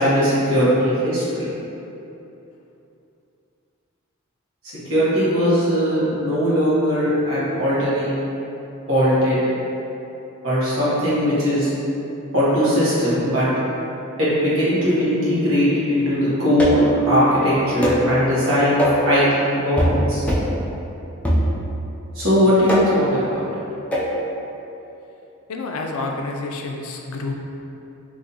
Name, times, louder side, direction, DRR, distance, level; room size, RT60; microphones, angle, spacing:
voice 1, 0.0-1.5 4.9-8.1 8.9-9.4 10.4-11.7 12.3-13.5 14.2-20.2 22.1-23.4, equal, 60° right, -10 dB, 1.1 m, -19 dB
sound 1, 16.6-17.0 17.8-18.1 18.8-19.1 19.8-20.0 20.3-20.6 21.2-21.8 22.7-23.1 23.9-24.1, equal, 5° left, 0.4 m, -21 dB
voice 2, 25.5-27.3, left 3 dB, 75° left, 2 dB, 0.4 m, -29 dB
3.8 x 2.6 x 2.8 m, 2.9 s
head